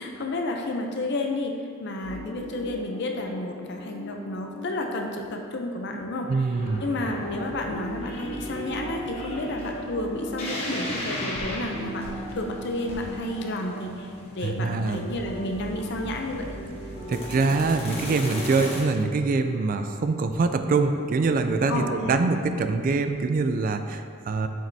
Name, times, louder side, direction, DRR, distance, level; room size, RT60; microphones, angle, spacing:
voice 1, 0.0-6.6 6.8-12.0 12.3-16.5 21.7-22.2, left 2 dB, 55° left, 2 dB, 0.6 m, -31 dB
sound 1, 2.0-20.7 21.1-21.2, equal, 15° left, 1.4 m, -42 dB
voice 2, 6.3-6.8 14.4-15.0 17.1-24.5, right 3 dB, 45° right, 8 dB, 0.3 m, -24 dB
sound 2, 6.5-18.8, equal, 30° left, 1.2 m, -36 dB
7.4 x 5.2 x 2.7 m, 2.2 s
head